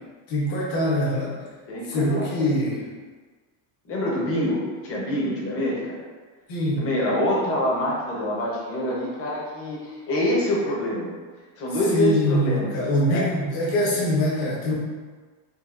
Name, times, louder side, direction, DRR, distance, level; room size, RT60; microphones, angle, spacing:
voice 1, 0.3-1.4 1.9-2.9 6.5-6.8 11.9-14.7, equal, 50° left, -5 dB, 1.1 m, -23 dB
voice 2, 1.7-2.5 3.8-6.0 6.8-11.1 11.6-12.7 13.1-13.3, left 1 dB, 30° left, -5 dB, 0.8 m, -26 dB
5.6 x 2.3 x 2.5 m, 1.4 s
cardioid pair, 175°, 46 cm